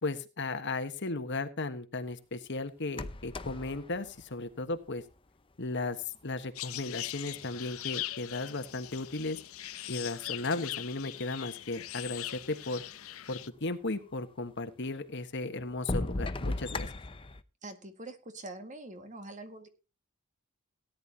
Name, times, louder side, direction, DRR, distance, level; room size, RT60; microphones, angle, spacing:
voice 1, 0.0-5.0 5.6-9.4 9.9-12.8 13.3-16.9, left 2 dB, 55° left, 9 dB, 1.4 m, -35 dB
sound 1, 2.9-5.2 6.2-6.3 6.9-8.1 8.7-9.6 10.4-10.5 10.6-10.7 11.4-11.5 11.7-12.5 14.1-14.2 14.8-14.9 15.6-17.4, left 2 dB, 25° left, 0.7 m, -37 dB
sound 2, 6.5-13.5, left 14 dB, 70° left, 0.8 m, -41 dB
voice 2, 17.6-19.7, right 2 dB, 35° right, 7 dB, 2.0 m, -44 dB
18.0 x 10.5 x 2.9 m, 0.30 s
head